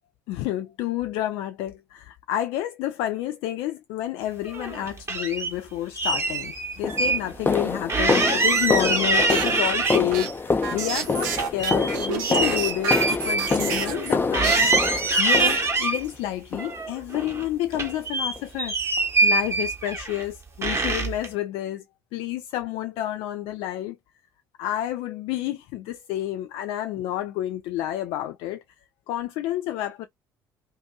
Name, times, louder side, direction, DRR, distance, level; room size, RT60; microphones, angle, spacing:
voice 1, 0.3-14.9 15.2-18.7 19.2-21.8 22.1-24.0 24.6-28.6 29.1-30.1, left 13 dB, 65° left, 0.3 m, -29 dB
sound 1, 4.5-5.5 6.0-7.2 7.5-7.6 7.9-10.3 10.7-14.1 14.3-16.0 16.6-17.5 17.7-20.2 20.6-21.3, right 3 dB, 25° right, 1.0 m, -24 dB
sound 2, 6.1-6.3 6.8-16.0 16.5-16.9 17.1-17.4 17.7-17.9 18.4-18.5 19.0-19.1, left 3 dB, 20° left, 0.6 m, -27 dB
sound 3, 9.1-14.1 14.4-16.1, right 7 dB, 75° right, 0.6 m, -31 dB
2.6 x 2.5 x 2.2 m
hypercardioid pair, 55°, 11 cm